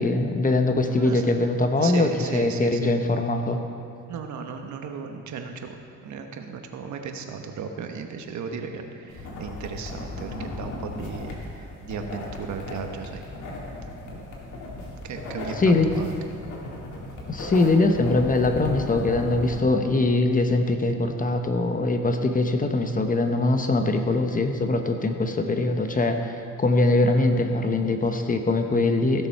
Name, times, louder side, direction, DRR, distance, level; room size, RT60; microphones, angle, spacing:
voice 1, 0.0-3.6 15.6-15.9 17.3-26.4 26.6-29.3, left 2 dB, 25° left, 5 dB, 0.9 m, -22 dB
voice 2, 0.8-1.3 1.8-2.9 4.1-5.7 6.0-13.2 14.0-14.2 15.0-16.1, right 6 dB, 70° right, 5 dB, 1.1 m, -35 dB
sound 1, 9.1-19.6, left 2 dB, 80° left, 2.2 m, -37 dB
15.5 x 6.9 x 4.6 m, 2.5 s
cardioid pair, 90°, 30 cm